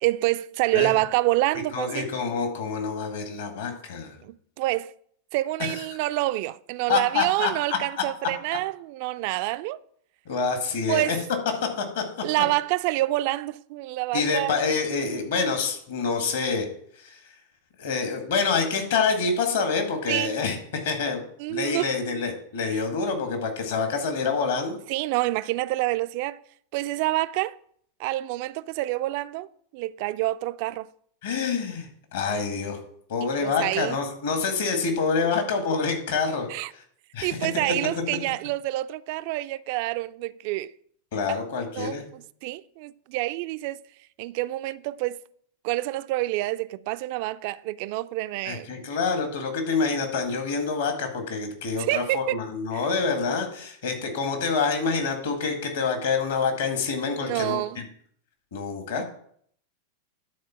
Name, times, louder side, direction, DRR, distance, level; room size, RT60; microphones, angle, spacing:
voice 1, 0.0-2.1 4.2-4.9 5.3-9.8 10.9-11.2 12.2-14.5 20.1-20.3 21.4-21.9 22.7-22.8 24.9-26.4 26.7-27.6 28.0-29.5 29.7-30.9 33.4-34.0 36.5-36.7 37.2-40.7 41.1-41.4 41.8-43.8 44.2-45.2 45.6-48.8 51.9-52.4 52.7-52.8 57.2-57.8 59.0-59.1, right 17 dB, 45° right, 0.3 m, -27 dB
voice 2, 1.7-4.2 5.7-5.8 6.9-7.8 10.3-11.2 11.8-12.0 14.1-16.7 17.0-17.2 17.8-21.2 21.5-24.8 31.2-32.8 33.1-36.8 37.1-37.4 41.1-42.1 48.5-57.8 58.5-59.0, left 5 dB, 60° left, 1.8 m, -27 dB
10.5 x 4.4 x 5.7 m
figure-of-eight pair, 90°, 0 cm